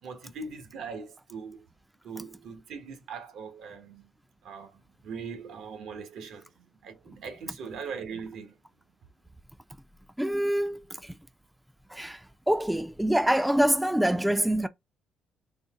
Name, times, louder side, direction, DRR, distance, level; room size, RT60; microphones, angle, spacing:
voice 1, 0.0-1.7 2.0-4.1 4.4-6.5 6.8-8.5, right 5 dB, 80° right, 1.0 m, -40 dB
voice 2, 10.2-11.2 11.9-14.7, right 1 dB, 5° right, 0.3 m, -26 dB
3.9 x 2.0 x 3.5 m
cardioid pair, 90°, 0 cm